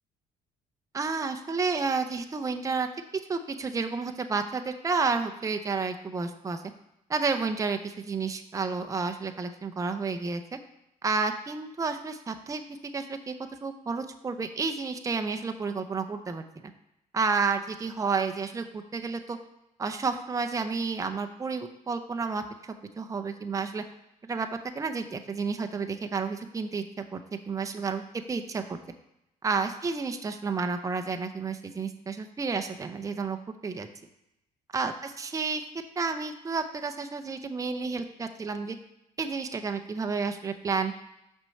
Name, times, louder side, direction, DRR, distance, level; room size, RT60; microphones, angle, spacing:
voice 1, 0.9-2.9 3.3-6.6 7.1-10.6 11.0-12.6 12.9-13.3 13.6-16.7 17.1-19.4 19.8-23.8 24.3-24.5 24.7-27.2 27.5-28.0 28.3-28.8 29.4-33.4 33.6-33.9 34.7-35.6 36.0-38.8 39.2-40.9, right 4 dB, 20° right, 6 dB, 0.6 m, -31 dB
6.0 x 4.5 x 6.5 m, 0.86 s
cardioid pair, 110°, 17 cm